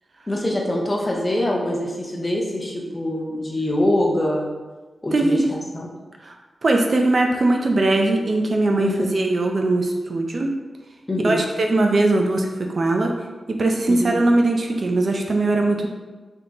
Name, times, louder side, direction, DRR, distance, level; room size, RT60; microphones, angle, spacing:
voice 1, 0.3-4.5 5.0-5.9 8.8-9.1 11.1-11.4 13.9-14.2, left 1 dB, 20° left, -1 dB, 0.6 m, -24 dB
voice 2, 5.1-5.4 6.2-6.3 6.6-10.5 11.2-13.1 13.5-15.9, right 2 dB, 45° right, 2 dB, 0.4 m, -20 dB
3.6 x 2.8 x 3.8 m, 1.3 s
wide cardioid pair, 160°, 0 cm